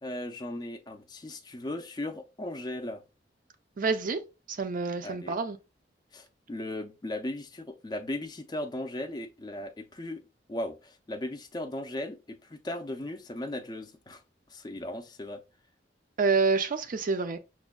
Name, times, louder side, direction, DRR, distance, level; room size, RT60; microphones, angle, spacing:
voice 1, 0.0-3.0 5.0-5.3 6.1-10.2 10.5-14.2 14.5-15.4, left 1 dB, 25° left, 0.4 m, -37 dB
voice 2, 3.8-4.2 4.5-5.6 16.2-17.4, right 4 dB, 50° right, 0.5 m, -27 dB
6.0 x 2.1 x 2.3 m
head